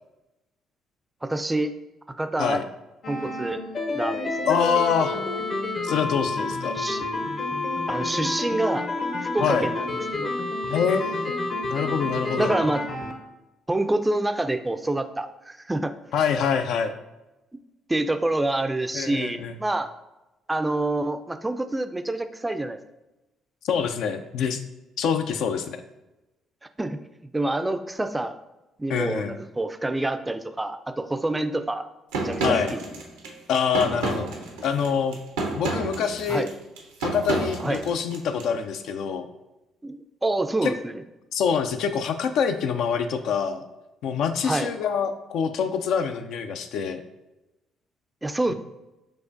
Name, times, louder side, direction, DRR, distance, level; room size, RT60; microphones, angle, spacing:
voice 1, 1.2-1.7 2.1-2.6 3.1-3.6 3.9-4.6 6.7-7.3 7.9-8.9 9.2-9.9 10.1-10.4 12.4-12.9 13.7-15.9 17.9-19.9 20.5-22.8 26.8-27.0 27.3-28.4 28.8-31.9 32.2-32.8 36.3-36.5 37.6-37.9 39.8-40.9 44.4-44.7 48.2-48.5, right 2 dB, 15° right, 9 dB, 0.3 m, -27 dB
sound 1, 3.0-13.1, left 2 dB, 45° left, 0.7 m, -29 dB
voice 2, 4.5-5.2 5.8-6.7 9.4-9.7 10.7-11.3 11.7-12.6 16.1-16.9 18.9-19.5 23.6-24.6 25.0-25.8 28.9-29.4 32.4-32.7 33.5-34.3 34.6-35.2 35.5-36.5 37.0-39.3 40.6-40.7 41.3-43.6 44.0-47.0, left 7 dB, 70° left, 7 dB, 0.3 m, -25 dB
sound 2, 32.1-38.5, right 2 dB, 85° right, 0.6 m, -30 dB
6.3 x 2.4 x 2.6 m, 1.0 s
hypercardioid pair, 50°, 0 cm